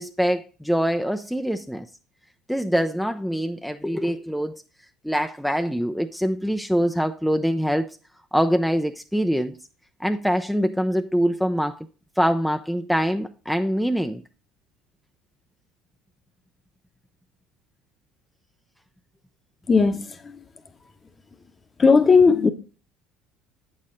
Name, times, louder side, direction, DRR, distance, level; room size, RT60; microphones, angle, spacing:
voice 1, 0.0-1.9 2.5-4.6 5.0-8.0 8.3-9.6 10.0-11.8 12.2-14.2, equal, ahead, 0.5 m, -24 dB
voice 2, 19.7-20.0 21.8-22.5, left 5 dB, 30° left, 1.0 m, -15 dB
8.4 x 6.5 x 3.8 m
hypercardioid pair, 65°, 0 cm